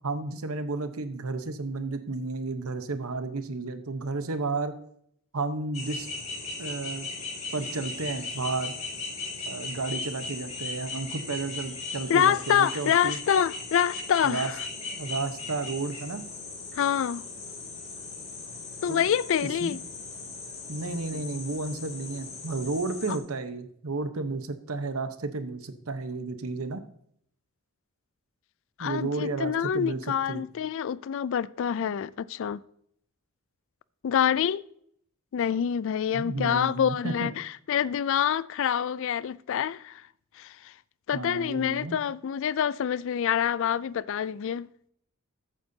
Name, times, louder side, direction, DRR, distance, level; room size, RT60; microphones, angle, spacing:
voice 1, 0.0-4.8 5.3-6.1 6.6-7.1 7.5-8.7 9.4-13.2 14.2-14.5 14.9-16.2 18.9-19.0 19.6-19.8 20.7-26.8 28.8-30.4 36.1-37.3 41.1-42.0, right 3 dB, 85° right, 1.0 m, -32 dB
sound 1, 5.7-23.2, left 3 dB, 30° left, 2.7 m, -38 dB
voice 2, 12.1-14.6 16.7-17.2 18.8-19.8 21.1-21.2 28.8-32.6 34.0-34.6 35.3-40.0 40.4-40.7 41.1-44.7, left 8 dB, 65° left, 0.3 m, -26 dB
14.5 x 9.1 x 2.8 m
head